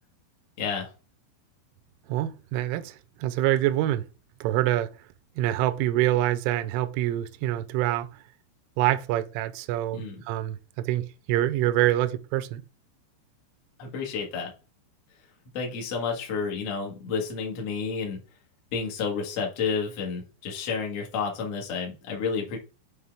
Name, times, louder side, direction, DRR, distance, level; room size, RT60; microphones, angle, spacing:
voice 1, 0.6-0.9 9.9-10.2 13.8-14.5 15.5-18.2 18.7-22.6, left 5 dB, 70° left, 1.4 m, -30 dB
voice 2, 2.1-4.0 4.4-4.9 5.4-8.1 8.8-12.6, right 14 dB, 85° right, 2.9 m, -26 dB
8.7 x 3.7 x 3.5 m
omnidirectional pair, 5.9 m